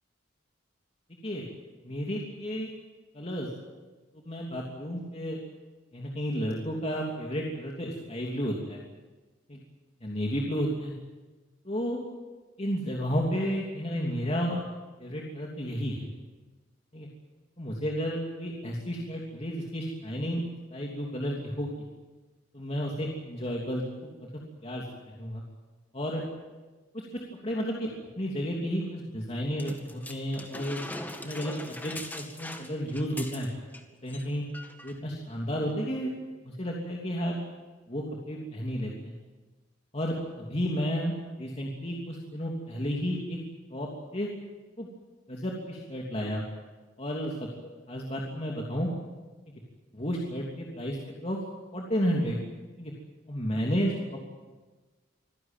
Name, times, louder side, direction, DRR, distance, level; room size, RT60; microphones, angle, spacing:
voice 1, 1.8-2.7 3.1-3.5 4.1-5.4 5.9-8.8 9.5-9.6 10.0-10.9 11.6-12.0 12.6-14.6 15.0-16.0 16.9-17.1 17.6-20.4 20.7-21.7 22.5-24.3 24.6-25.4 25.9-26.2 26.9-27.9 28.2-30.8 31.2-33.5 34.0-34.4 34.8-36.1 36.4-37.4 37.9-39.1 39.9-43.4 43.7-44.3 44.8-44.9 45.3-46.4 47.0-47.5 47.9-48.9 49.5-49.6 49.9-51.4 51.7-52.4 52.8-52.9 53.3-53.9, equal, 30° left, -2 dB, 3.1 m, -32 dB
sound 1, 29.6-33.8 34.1-34.3 34.5-35.0 35.7-35.8, left 1 dB, 10° left, 2.0 m, -41 dB
25.5 x 16.5 x 9.2 m, 1.3 s
head